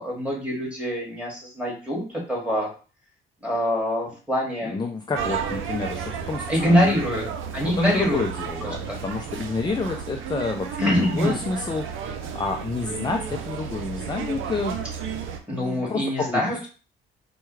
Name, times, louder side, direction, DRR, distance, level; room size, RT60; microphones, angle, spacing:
voice 1, 0.0-2.7 3.4-4.8 6.5-7.2 7.5-8.2 8.6-9.0 10.8-11.4 15.5-16.7, equal, 5° right, -4 dB, 2.0 m, -24 dB
voice 2, 4.6-7.0 7.6-11.9 12.2-14.8 15.5-16.7, left 4 dB, 20° left, 3 dB, 0.5 m, -29 dB
sound 1, 5.1-15.4, right 7 dB, 80° right, 0.6 m, -33 dB
4.5 x 2.3 x 3.2 m, 0.36 s
cardioid pair, 90°, 20 cm